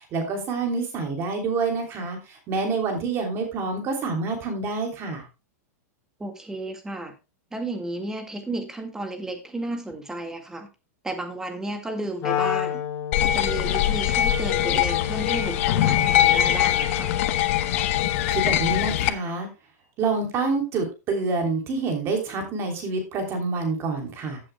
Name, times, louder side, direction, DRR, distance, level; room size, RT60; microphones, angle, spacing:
voice 1, 0.1-5.2 18.3-19.5 20.0-24.4, right 3 dB, 30° right, 3.1 m, -27 dB
voice 2, 6.2-7.1 7.5-10.7 11.0-12.8 13.2-17.1, right 2 dB, 5° right, 1.8 m, -33 dB
Wind instrument woodwind instrument, 12.2-18.6, left 9 dB, 30° left, 1.5 m, -31 dB
sound 1, 13.1-19.1, left 12 dB, 55° left, 0.9 m, -22 dB
15.0 x 7.6 x 2.2 m
supercardioid pair, 150°, 8 cm